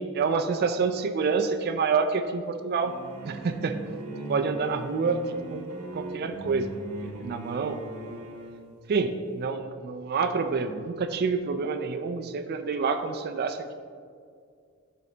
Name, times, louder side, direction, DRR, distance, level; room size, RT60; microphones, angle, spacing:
voice 1, 0.0-2.9 3.3-3.8 4.3-5.2 5.5-5.6 5.9-6.7 7.0-7.8 8.1-8.2 8.9-13.7, right 5 dB, 45° right, 7 dB, 0.4 m, -28 dB
sound 1, 2.8-8.7, right 2 dB, 70° right, 1.0 m, -39 dB
10.0 x 3.8 x 3.3 m, 2.2 s
head